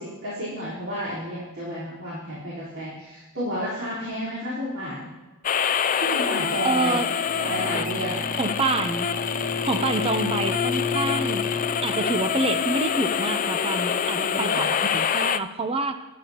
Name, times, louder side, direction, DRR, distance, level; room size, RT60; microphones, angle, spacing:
voice 1, 0.0-5.1 6.0-7.0 7.3-8.3 14.2-14.7, equal, 65° right, -11 dB, 4.0 m, -31 dB
sound 1, 5.4-15.4, left 7 dB, 35° left, 0.4 m, -26 dB
voice 2, 6.6-7.1 8.4-9.1 9.6-11.5 11.8-16.0, right 2 dB, 25° right, 9 dB, 0.7 m, -27 dB
Bowed string instrument, 7.2-12.5, left 4 dB, 60° left, 1.4 m, -31 dB
21.0 x 10.5 x 3.0 m, 1.2 s
head